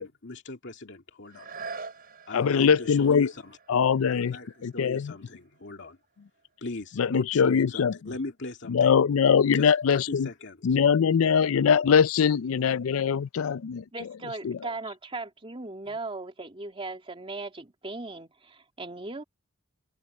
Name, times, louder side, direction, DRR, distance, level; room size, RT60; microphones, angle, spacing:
voice 1, 0.0-1.5 2.3-3.6 4.0-6.0 6.6-8.9 9.5-10.7 15.9-16.0, left 2 dB, 60° left, 2.3 m, -39 dB
sound 1, 1.2-6.9 7.5-7.6, right 4 dB, 45° right, 3.9 m, -46 dB
voice 2, 2.3-3.3 3.7-4.4 4.6-5.1 7.0-7.9 8.7-10.3 10.6-13.8 14.4-14.6, left 7 dB, 85° left, 0.4 m, -22 dB
voice 3, 13.9-19.2, right 3 dB, 25° right, 2.5 m, -38 dB
open air
head